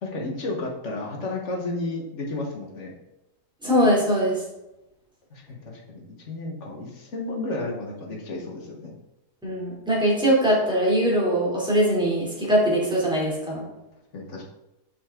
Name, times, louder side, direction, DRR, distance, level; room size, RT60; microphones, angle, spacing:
voice 1, 0.0-2.9 5.3-8.9 14.1-14.4, left 2 dB, 45° left, -1 dB, 1.4 m, -32 dB
voice 2, 3.6-4.4 9.4-13.6, equal, 5° right, -6 dB, 2.7 m, -21 dB
6.9 x 5.9 x 3.7 m, 0.94 s
omnidirectional pair, 1.8 m